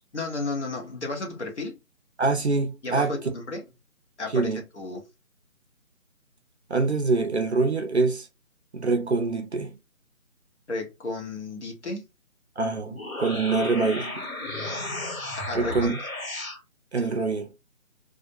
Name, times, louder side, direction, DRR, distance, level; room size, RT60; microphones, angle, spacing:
voice 1, 0.1-1.8 2.8-3.6 4.2-5.0 10.7-12.0 15.4-15.9 17.0-17.1, left 2 dB, 50° left, 1.0 m, -33 dB
voice 2, 2.2-3.1 4.3-4.6 6.7-8.3 8.7-9.7 12.6-14.3 15.5-16.0 16.9-17.5, right 3 dB, 50° right, 0.5 m, -25 dB
sound 1, 12.8-16.6, left 2 dB, 75° left, 1.4 m, -34 dB
2.5 x 2.0 x 2.6 m
figure-of-eight pair, 160°, 43 cm